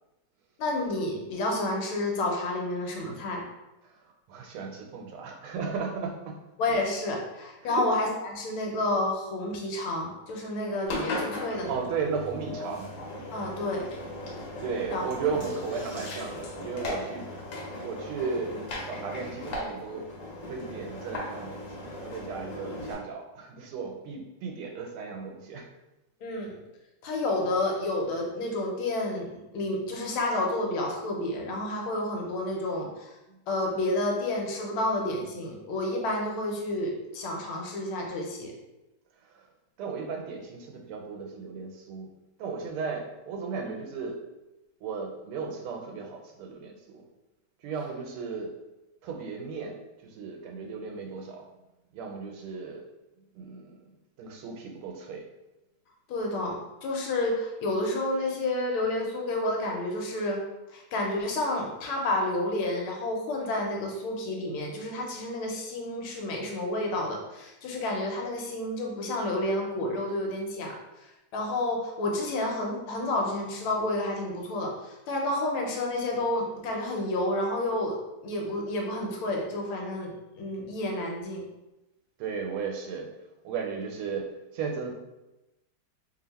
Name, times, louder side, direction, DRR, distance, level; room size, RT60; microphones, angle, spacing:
voice 1, 0.6-3.4 6.6-11.7 13.3-13.9 14.9-15.0 26.2-26.6 27.0-33.1 33.5-38.5 43.5-43.7 56.1-60.4 60.7-70.8 71.3-78.0 78.2-81.4, left 1 dB, 80° left, 0 dB, 1.6 m, -30 dB
voice 2, 3.8-6.4 7.6-7.9 11.7-12.9 14.6-17.3 17.8-18.6 18.9-20.1 20.5-25.7 39.3-39.5 39.8-42.1 42.4-44.2 44.8-47.0 47.6-48.6 49.0-51.5 51.9-52.9 53.3-53.8 54.2-55.3 82.2-83.1 83.4-84.9, right 5 dB, 85° right, 2 dB, 1.6 m, -35 dB
Engine, 10.9-22.9, left 1 dB, 65° left, 1.5 m, -37 dB
3.3 x 2.7 x 4.0 m, 0.99 s
omnidirectional pair, 2.3 m